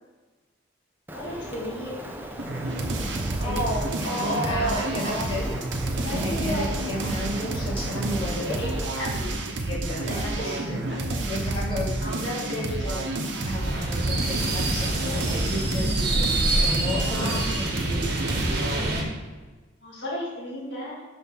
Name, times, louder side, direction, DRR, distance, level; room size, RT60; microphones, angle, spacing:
voice 1, 1.1-2.1 3.4-5.4 6.0-6.7 8.5-9.4 10.1-10.9 12.0-13.2 17.2-17.6 19.8-21.0, equal, 65° left, -4 dB, 2.1 m, -32 dB
Rain, 1.1-8.9, equal, 10° right, 0.7 m, -39 dB
sound 1, 2.4-18.9, right 2 dB, 75° right, 1.0 m, -30 dB
voice 2, 4.0-5.6 6.1-8.6 9.6-10.8 11.1-12.0 13.4-18.2, left 1 dB, 30° left, -6 dB, 2.0 m, -33 dB
sound 2, 13.6-19.0, right 2 dB, 55° right, 1.4 m, -26 dB
6.0 x 5.6 x 5.7 m, 1.3 s
head